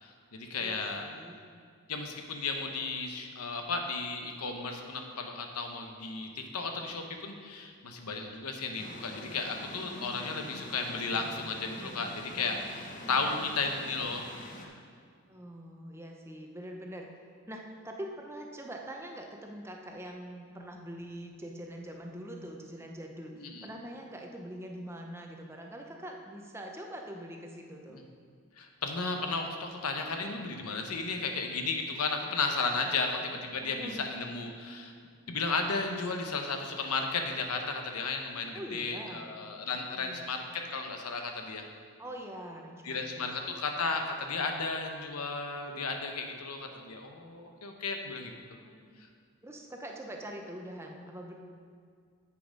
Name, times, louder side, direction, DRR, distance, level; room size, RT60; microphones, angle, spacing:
voice 1, 0.0-1.1 1.9-14.3 23.4-23.7 27.9-28.0 28.6-34.9 35.3-41.6 42.8-48.3, left 4 dB, 85° left, 4 dB, 1.0 m, -34 dB
voice 2, 0.6-1.4 15.3-17.1 17.5-28.0 32.8-33.1 33.6-34.1 38.5-39.3 39.9-40.3 42.0-43.3 48.6-48.9 49.4-51.3, right 1 dB, 10° right, 1 dB, 0.7 m, -44 dB
sound 1, 8.8-14.7, left 1 dB, 35° left, 0.8 m, -45 dB
7.7 x 6.9 x 5.2 m, 2.1 s
head